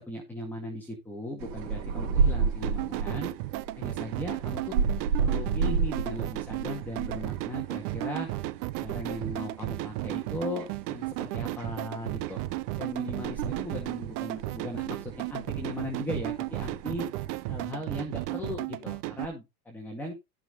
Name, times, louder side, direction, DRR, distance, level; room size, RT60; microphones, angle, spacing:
voice 1, 0.0-3.3 3.8-4.8 5.2-8.3 8.8-12.4 12.8-17.1 17.5-20.1, left 1 dB, 5° left, 0 dB, 2.1 m, -38 dB
sound 1, 1.4-17.6, right 5 dB, 85° right, 3.6 m, -33 dB
sound 2, 2.6-19.3, right 17 dB, 70° right, 1.0 m, -34 dB
14.5 x 6.0 x 4.0 m, 0.23 s
cardioid pair, 175°, 50 cm